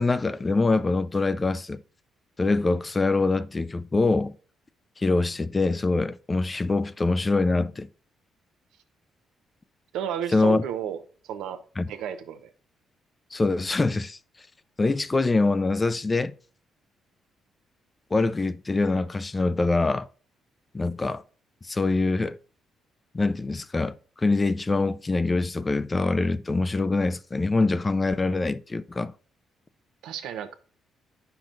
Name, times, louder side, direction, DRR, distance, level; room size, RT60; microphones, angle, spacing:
voice 1, 0.0-1.8 2.4-4.4 5.0-7.9 10.3-10.6 11.8-11.9 13.3-14.2 14.8-16.3 18.1-20.1 20.7-21.2 21.6-22.4 23.1-29.1, left 3 dB, 25° left, 0.4 m, -24 dB
voice 2, 9.9-11.0 11.2-11.6 11.9-12.5 30.0-30.5, right 9 dB, 90° right, 0.7 m, -32 dB
9.0 x 5.8 x 2.5 m
cardioid pair, 90°, 0 cm